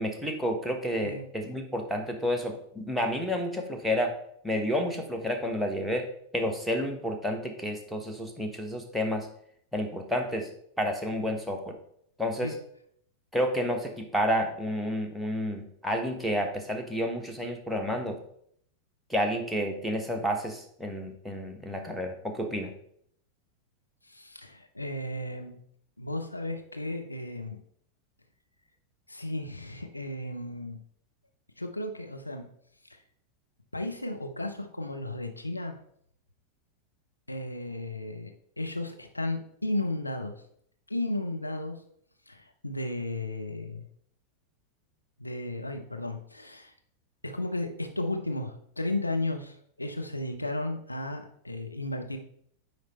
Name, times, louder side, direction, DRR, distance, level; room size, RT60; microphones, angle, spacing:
voice 1, 0.0-4.1 4.4-6.1 6.3-9.3 9.7-10.5 10.8-11.7 12.2-12.5 13.3-18.2 19.1-22.7, equal, ahead, 2 dB, 1.1 m, -30 dB
voice 2, 24.0-25.6 26.0-27.6 29.1-30.8 31.6-32.4 32.9-33.0 33.7-35.8 37.3-38.3 38.6-40.4 40.9-41.8 42.3-43.8 45.2-46.7 47.2-52.2, left 2 dB, 85° left, 4 dB, 0.7 m, -34 dB
9.3 x 3.2 x 4.1 m, 0.67 s
figure-of-eight pair, 90°, 0 cm